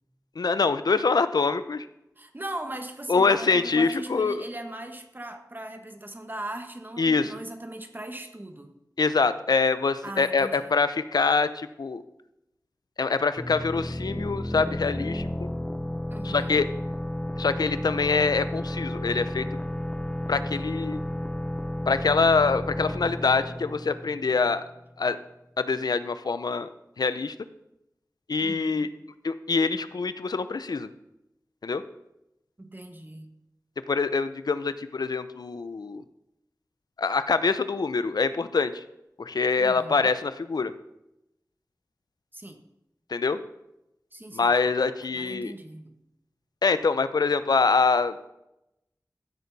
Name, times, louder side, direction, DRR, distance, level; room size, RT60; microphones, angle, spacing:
voice 1, 0.4-1.9 3.1-4.4 7.0-7.3 9.0-12.0 13.0-15.5 16.2-16.6 17.4-19.4 20.3-21.0 21.9-24.6 25.0-25.2 25.6-26.7 27.0-27.3 28.3-28.9 29.2-30.9 31.6-31.8 33.9-36.0 37.0-38.8 39.2-40.7 43.1-43.4 44.3-45.5 46.6-48.1, left 4 dB, 85° left, 12 dB, 0.6 m, -24 dB
voice 2, 2.2-8.7 10.0-10.7 16.1-16.7 28.4-28.9 32.6-33.3 39.6-40.0 42.3-42.6 44.1-44.5 45.0-45.9, right 1 dB, 30° right, 6 dB, 1.4 m, -39 dB
sound 1, 13.4-24.9, left 1 dB, 10° left, 0.5 m, -32 dB
14.5 x 8.3 x 4.1 m, 0.87 s
wide cardioid pair, 55°, 7 cm